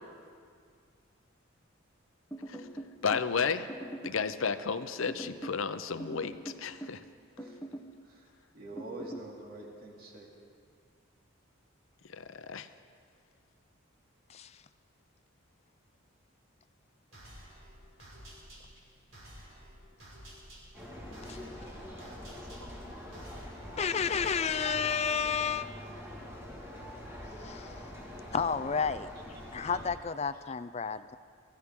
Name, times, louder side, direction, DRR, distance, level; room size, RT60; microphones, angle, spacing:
sound 1, 2.3-3.3 3.7-4.3 5.1-5.6 6.0-7.0 7.4-7.9 8.8-9.3, right 1 dB, 10° left, 0.9 m, -42 dB
voice 1, 3.0-3.7 4.0-7.0 12.1-12.7, left 5 dB, 70° left, 11 dB, 0.7 m, -32 dB
voice 2, 8.5-10.3 26.9-27.3 28.1-28.2 29.7-29.8, right 1 dB, 45° right, -2 dB, 2.6 m, -46 dB
voice 3, 14.3-14.6 21.3-21.4 23.8-25.9 27.2-27.9 28.3-29.1 29.5-31.2, left 6 dB, 30° left, 12 dB, 0.4 m, -31 dB
sound 2, 17.1-25.0, equal, 70° right, 5.2 m, -52 dB
sound 3, 20.7-29.9, left 1 dB, 10° right, 1.9 m, -45 dB
24.0 x 15.5 x 3.7 m, 2.1 s
head